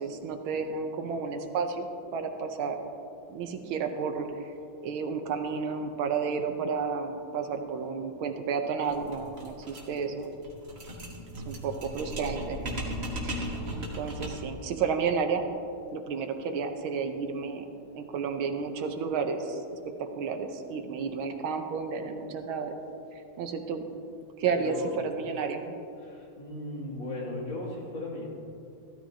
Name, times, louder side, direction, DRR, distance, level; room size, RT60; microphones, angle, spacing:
voice 1, 0.0-2.8 3.3-4.5 4.8-10.3 11.5-12.9 13.2-13.4 13.7-15.4 15.9-17.7 17.9-22.7 23.1-23.9 24.4-25.7, right 5 dB, 75° right, 6 dB, 1.6 m, -32 dB
sound 1, 8.9-14.6, equal, 35° right, 1.6 m, -37 dB
voice 2, 24.5-24.9 26.0-28.3, left 2 dB, 60° left, -5 dB, 3.2 m, -37 dB
15.0 x 13.0 x 2.8 m, 2.7 s
omnidirectional pair, 2.3 m